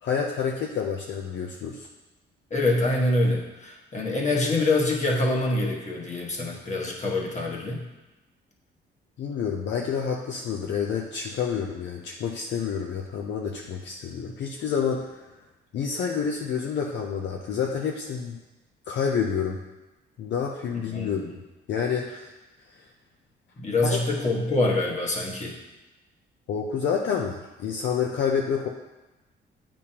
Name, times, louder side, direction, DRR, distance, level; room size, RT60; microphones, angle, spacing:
voice 1, 0.0-1.9 9.2-15.2 15.7-18.4 18.9-19.6 20.2-21.3 21.7-22.3 23.8-24.0 26.5-28.7, left 7 dB, 65° left, 0 dB, 0.6 m, -28 dB
voice 2, 2.5-7.8 20.9-21.3 23.6-25.5, left 2 dB, 35° left, -2 dB, 1.4 m, -25 dB
8.4 x 5.3 x 2.9 m, 1.1 s
cardioid pair, 90°, 20 cm